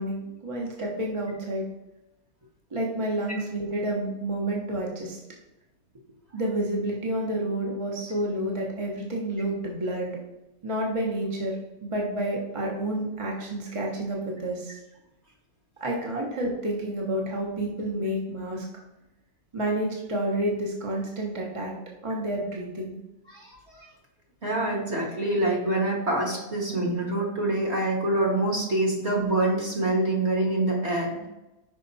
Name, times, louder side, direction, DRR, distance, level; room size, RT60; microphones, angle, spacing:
voice 1, 0.0-1.7 2.7-5.2 6.3-10.2 10.6-11.6 11.8-14.8 15.8-18.6 19.5-21.7 22.0-23.0, right 1 dB, 25° right, -2 dB, 0.9 m, -29 dB
voice 2, 24.4-31.2, right 2 dB, 45° right, -1 dB, 1.8 m, -25 dB
5.7 x 5.2 x 4.1 m, 0.97 s
omnidirectional pair, 1.7 m